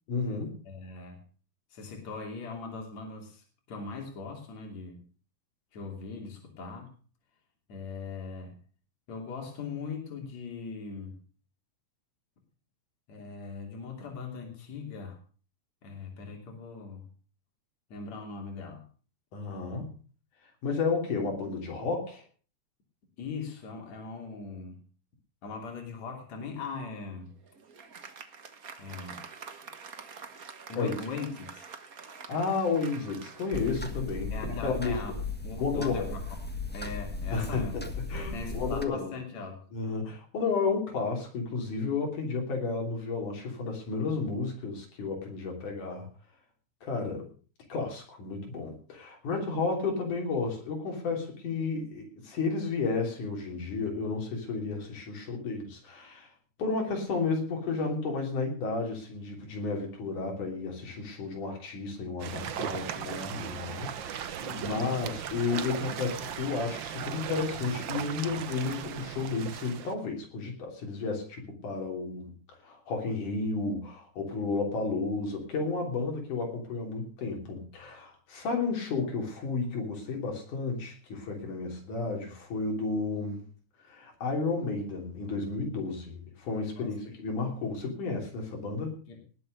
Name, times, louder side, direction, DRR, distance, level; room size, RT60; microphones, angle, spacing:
voice 1, 0.1-0.6 19.3-19.9 20.6-22.2 30.8-30.9 32.3-34.3 34.6-35.0 35.6-36.2 37.3-37.7 38.1-39.1 39.7-46.1 46.8-47.3 47.7-56.3 56.6-72.3 72.6-83.4 83.8-89.0, left 4 dB, 85° left, 2 dB, 4.8 m, -32 dB
voice 2, 0.7-1.2 1.7-5.0 5.7-6.9 7.7-8.6 9.1-11.2 13.1-15.2 15.8-17.1 17.9-18.9 23.2-24.9 25.4-27.4 28.8-29.2 30.7-31.7 34.3-36.4 36.7-37.9 38.3-39.7 64.4-64.8 86.8-86.9 89.1-89.2, left 4 dB, 65° left, 2 dB, 4.2 m, -40 dB
Applause, 27.1-34.7, right 5 dB, 40° right, 1.3 m, -47 dB
sound 1, 33.5-38.8, left 3 dB, 10° left, 0.5 m, -36 dB
sound 2, 62.2-69.9, right 9 dB, 70° right, 1.1 m, -37 dB
19.5 x 7.9 x 6.6 m, 0.40 s
omnidirectional pair, 3.5 m